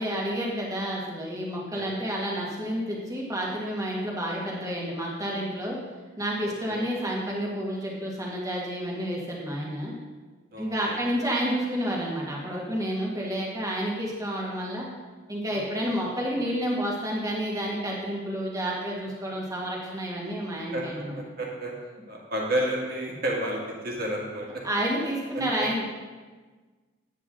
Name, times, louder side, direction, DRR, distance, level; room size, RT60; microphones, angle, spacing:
voice 1, 0.0-5.8 6.2-9.9 10.6-14.9 15.3-21.2 24.6-25.8, equal, 15° right, -4 dB, 1.8 m, -30 dB
voice 2, 6.4-6.8 10.5-11.0 20.7-20.8 21.1-21.7 22.1-24.5, right 1 dB, 45° right, -2 dB, 1.9 m, -31 dB
9.4 x 8.2 x 3.8 m, 1.4 s
head